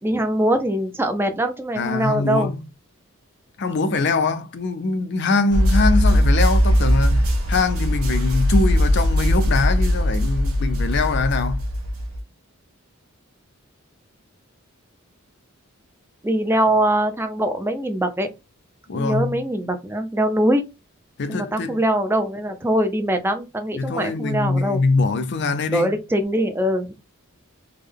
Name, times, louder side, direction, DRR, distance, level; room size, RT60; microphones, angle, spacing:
voice 1, 0.0-2.5 16.2-18.3 18.9-20.6 21.3-24.8 25.7-26.9, right 1 dB, 10° right, 0.5 m, -22 dB
voice 2, 1.8-2.6 3.6-11.6 18.9-19.4 21.2-21.8 23.8-25.9, left 3 dB, 55° left, 0.5 m, -23 dB
sound 1, 5.5-12.2, equal, 85° right, 1.0 m, -19 dB
3.5 x 2.2 x 3.4 m
head